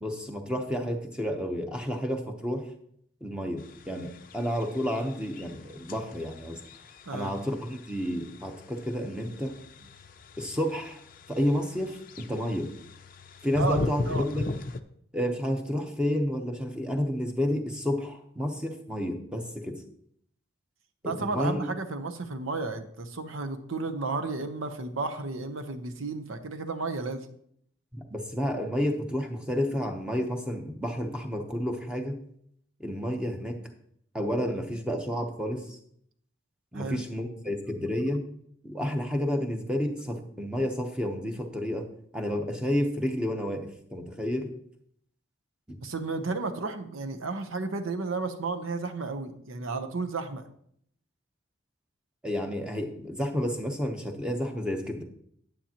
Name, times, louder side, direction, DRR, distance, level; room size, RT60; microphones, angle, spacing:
voice 1, 0.0-2.7 3.2-6.6 7.1-9.6 10.4-11.0 11.3-12.7 13.4-14.5 15.1-19.8 21.0-21.6 27.9-32.2 32.8-33.6 34.1-35.8 36.7-38.3 38.6-41.9 42.1-44.5 45.7-45.8 52.2-55.0, equal, 5° right, 4 dB, 0.8 m, -30 dB
sound 1, 3.6-14.8, left 2 dB, 45° left, 0.5 m, -39 dB
voice 2, 7.0-7.3 13.5-13.8 14.0-14.2 21.0-27.3 36.7-37.0 45.8-50.4, right 3 dB, 90° right, 8 dB, 0.9 m, -33 dB
10.0 x 8.8 x 2.9 m, 0.68 s
head